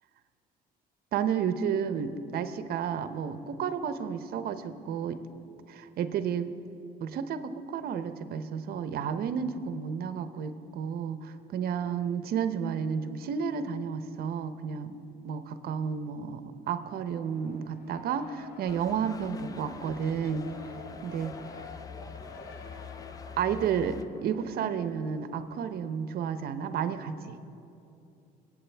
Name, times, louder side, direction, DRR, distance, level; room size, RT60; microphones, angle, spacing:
voice 1, 1.1-5.2 5.7-6.5 7.0-15.0 15.2-20.5 21.0-21.3 23.4-27.4, right 7 dB, 65° right, 10 dB, 0.7 m, -32 dB
Race car auto racing, 16.8-25.9, left 3 dB, 65° left, 1.1 m, -50 dB
sound 1, 18.7-24.0, left 5 dB, 20° left, 0.4 m, -45 dB
24.0 x 8.5 x 3.4 m, 2.8 s
cardioid pair, 110°, 17 cm